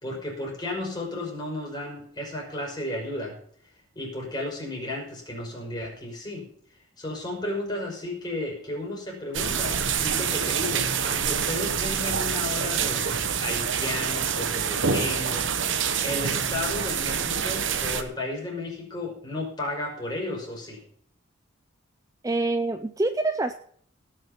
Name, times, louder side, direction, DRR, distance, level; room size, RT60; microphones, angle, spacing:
voice 1, 0.0-3.4 4.0-6.4 7.0-13.1 13.4-20.8, left 1 dB, 20° left, -2 dB, 5.5 m, -33 dB
sound 1, 9.3-18.0, right 7 dB, 65° right, 1.1 m, -26 dB
voice 2, 22.2-23.5, right 2 dB, 15° right, 9 dB, 0.4 m, -26 dB
18.0 x 6.6 x 5.8 m, 0.62 s
head